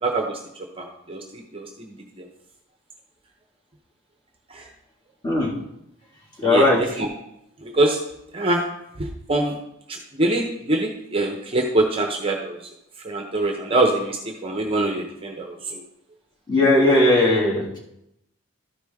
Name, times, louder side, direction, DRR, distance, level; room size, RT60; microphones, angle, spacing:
voice 1, 0.0-0.4 0.8-2.3 4.5-4.6 6.4-7.1 7.6-8.0 8.3-8.7 9.0-9.6 9.9-12.6 13.0-15.8, right 2 dB, 25° right, 2 dB, 0.7 m, -24 dB
voice 2, 6.4-6.8 16.5-17.6, left 2 dB, 20° left, -5 dB, 2.0 m, -17 dB
12.5 x 4.9 x 3.5 m, 0.83 s
head